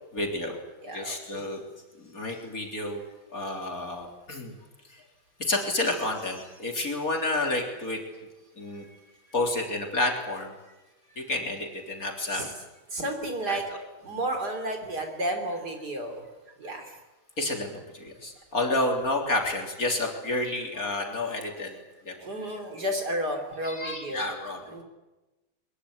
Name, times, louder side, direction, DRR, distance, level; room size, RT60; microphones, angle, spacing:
voice 1, 0.1-0.6 0.9-1.6 2.0-3.0 3.3-4.5 4.9-5.0 5.4-8.0 8.6-8.8 9.3-10.5 11.2-12.5 13.5-13.8 14.1-14.2 17.4-21.7 22.1-22.3 23.6-24.8, left 2 dB, 40° left, 1 dB, 4.0 m, -30 dB
voice 2, 0.8-1.4 12.3-12.5 12.9-13.6 14.0-16.2 16.6-16.9 22.2-24.2 24.7-24.8, right 1 dB, 50° right, 5 dB, 4.0 m, -32 dB
22.0 x 21.5 x 9.7 m, 1.1 s
omnidirectional pair, 2.3 m